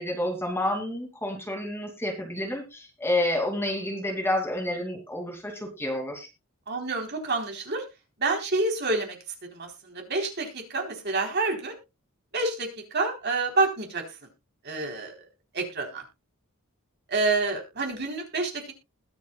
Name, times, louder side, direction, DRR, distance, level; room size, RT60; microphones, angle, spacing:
voice 1, 0.0-6.3, left 1 dB, 10° left, 2 dB, 2.6 m, -29 dB
voice 2, 6.7-7.8 8.2-9.2 9.5-11.8 12.3-12.7 12.9-14.0 14.6-15.1 15.5-16.0 17.1-18.7, right 3 dB, 50° right, 2 dB, 3.8 m, -28 dB
21.0 x 7.1 x 2.3 m, 0.25 s
head